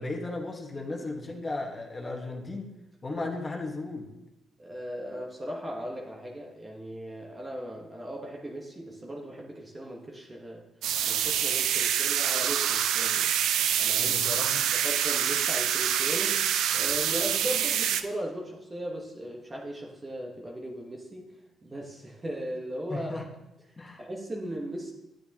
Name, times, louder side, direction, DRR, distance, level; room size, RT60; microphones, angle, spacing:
voice 1, 0.0-2.7 3.0-4.1 14.0-14.6 22.9-23.3 23.8-24.0, left 2 dB, 25° left, 1 dB, 1.3 m, -35 dB
voice 2, 4.6-10.7 11.0-13.3 13.8-14.2 14.6-16.4 16.7-21.3 21.6-23.1 24.0-24.9, right 1 dB, 25° right, -1 dB, 1.2 m, -37 dB
sound 1, 10.8-18.0, right 9 dB, 85° right, 0.4 m, -26 dB
9.0 x 8.7 x 2.9 m, 0.96 s
cardioid pair, 90°, 0 cm